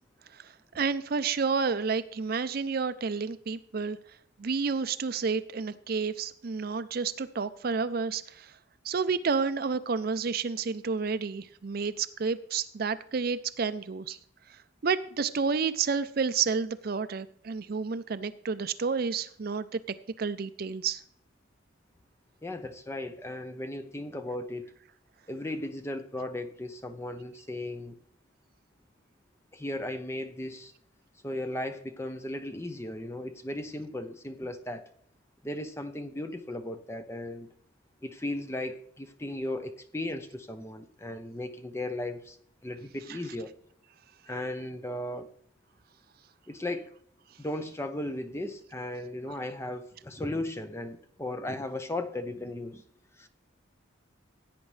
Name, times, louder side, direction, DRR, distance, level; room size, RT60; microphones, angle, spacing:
voice 1, 0.3-4.0 4.4-8.5 8.8-14.2 14.5-19.8 20.2-21.0 43.1-43.2 49.3-49.4, right 5 dB, 45° right, 13 dB, 0.4 m, -30 dB
voice 2, 22.4-24.7 25.3-28.0 29.5-30.7 31.2-34.9 35.4-37.5 38.0-42.4 42.6-43.5 44.3-45.3 46.5-46.9 47.4-52.8 53.2-53.3, left 1 dB, 15° left, 8 dB, 0.6 m, -36 dB
16.0 x 8.9 x 3.2 m, 0.64 s
head